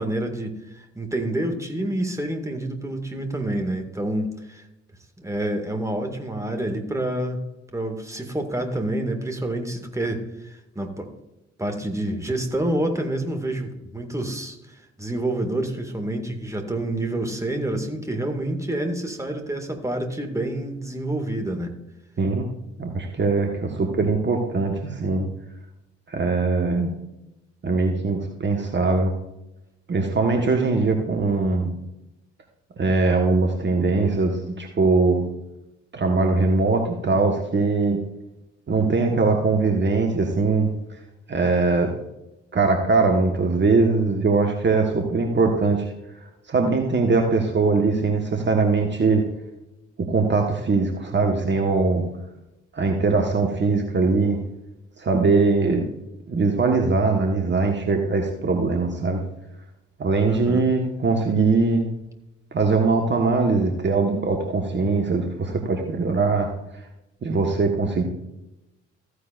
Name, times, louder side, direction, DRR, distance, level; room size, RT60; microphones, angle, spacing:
voice 1, 0.0-4.6 5.2-7.4 7.7-11.1 11.6-21.7 60.3-60.6, right 1 dB, 10° right, 4 dB, 2.0 m, -28 dB
voice 2, 22.8-25.3 26.1-26.9 27.6-29.1 29.9-31.7 32.8-35.2 35.9-38.0 38.7-41.0 41.3-41.9 42.5-45.9 46.5-49.2 50.1-52.0 52.7-54.4 55.0-55.9 56.3-59.2 60.0-61.9 62.5-66.5 67.2-68.0, right 3 dB, 30° right, 2 dB, 1.4 m, -21 dB
14.5 x 9.8 x 2.5 m, 0.92 s
figure-of-eight pair, 45°, 34 cm